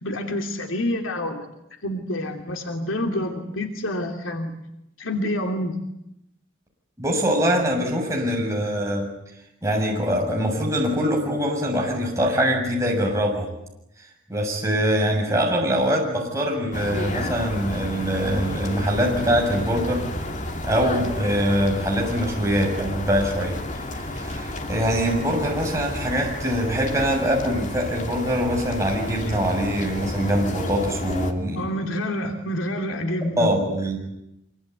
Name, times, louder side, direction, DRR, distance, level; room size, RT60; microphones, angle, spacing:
voice 1, 0.0-1.5 1.8-4.5 5.0-5.8 31.5-33.6, left 1 dB, 70° left, 4 dB, 2.9 m, -27 dB
voice 2, 7.0-9.1 9.6-13.5 14.3-20.0 20.6-23.5 24.1-31.6 33.4-34.0, equal, 15° right, -1 dB, 7.4 m, -23 dB
sound 1, 16.7-31.3, left 1 dB, 35° left, 2.6 m, -31 dB
25.5 x 24.0 x 9.5 m, 0.83 s
head